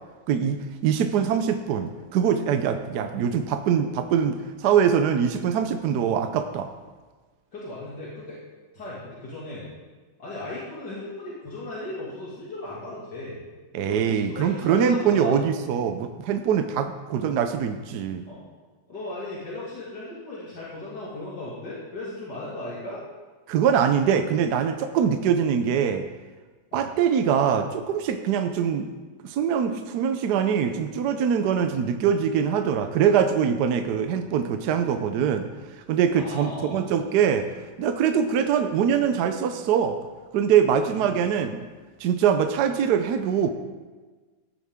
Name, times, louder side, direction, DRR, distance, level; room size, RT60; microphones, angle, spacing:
voice 1, 0.3-6.7 13.7-18.2 23.5-26.0 26.7-28.9 29.2-35.5 35.7-37.5 37.8-40.0 40.3-41.6 42.0-43.5, right 7 dB, 70° right, 7 dB, 1.2 m, -23 dB
voice 2, 7.5-8.4 8.7-9.7 10.2-13.4 13.8-15.3 18.2-18.4 18.9-23.0 26.7-26.9 31.4-31.6 36.1-36.8 40.9-41.1, left 2 dB, 70° left, -8 dB, 3.0 m, -36 dB
15.0 x 10.5 x 3.6 m, 1.3 s
omnidirectional pair, 1.9 m